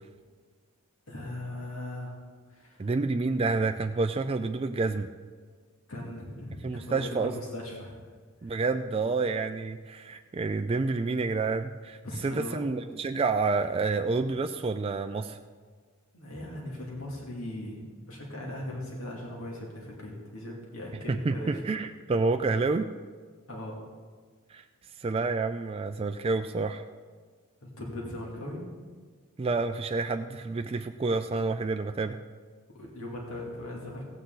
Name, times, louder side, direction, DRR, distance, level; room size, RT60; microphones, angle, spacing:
voice 1, 1.1-2.1 2.5-2.9 5.9-8.0 8.4-8.6 12.0-12.6 16.1-21.6 23.5-23.8 27.6-28.6 32.7-34.0, left 1 dB, 75° left, -3 dB, 2.4 m, -39 dB
voice 2, 2.8-5.1 6.6-7.3 8.4-12.0 12.2-15.4 21.1-22.9 24.5-24.6 25.0-26.8 29.4-32.2, right 3 dB, 25° right, 6 dB, 0.3 m, -29 dB
15.5 x 9.0 x 3.9 m, 1.5 s
head